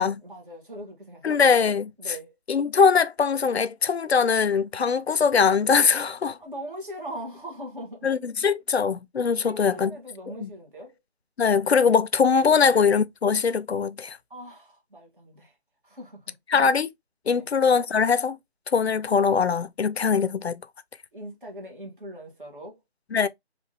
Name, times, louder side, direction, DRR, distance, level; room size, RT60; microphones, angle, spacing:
voice 1, 0.0-1.4 2.0-2.3 6.4-8.1 9.4-10.9 12.5-12.6 14.3-15.5 15.8-16.2 17.3-17.5 21.1-22.8, equal, 50° right, 1.5 m, -40 dB
voice 2, 1.2-1.9 2.5-6.4 8.0-9.9 10.4-10.5 11.4-14.2 16.5-16.9 17.3-18.4 18.7-20.6 23.1-23.3, left 6 dB, 70° left, 0.5 m, -21 dB
3.2 x 2.6 x 3.3 m
figure-of-eight pair, 165°, 33 cm